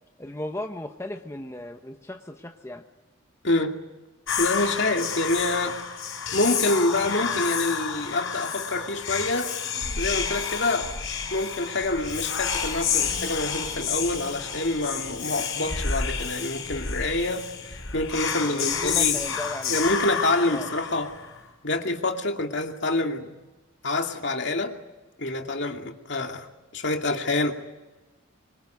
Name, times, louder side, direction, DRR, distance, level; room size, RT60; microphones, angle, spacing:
voice 1, 0.2-2.8 18.4-19.8 20.5-20.7, left 1 dB, 15° left, 5 dB, 1.0 m, -36 dB
voice 2, 3.4-3.7 4.4-5.8 6.3-9.5 10.0-10.9 11.3-19.2 19.7-21.1 21.6-23.3 23.8-24.8 25.2-26.5 26.7-27.5, left 2 dB, 55° left, 4 dB, 2.6 m, -26 dB
Whispering, 4.3-21.4, left 6 dB, 80° left, 5.6 m, -30 dB
25.5 x 24.0 x 9.4 m, 1.1 s
head